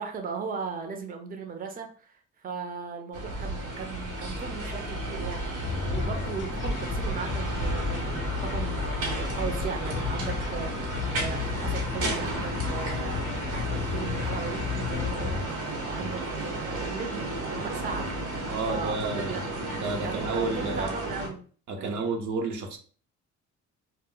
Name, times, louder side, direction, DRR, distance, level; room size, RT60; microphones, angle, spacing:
voice 1, 0.0-15.4 15.8-21.4 21.8-22.1, right 5 dB, 30° right, 4 dB, 0.5 m, -38 dB
sound 1, 3.1-21.3, right 1 dB, 90° right, 1.0 m, -33 dB
sound 2, 5.6-15.5, left 7 dB, 40° left, 0.4 m, -34 dB
voice 2, 18.5-19.4 19.7-20.9 21.7-22.8, right 3 dB, 75° right, 3 dB, 0.7 m, -31 dB
2.1 x 2.1 x 3.7 m, 0.42 s
cardioid pair, 90°, 30 cm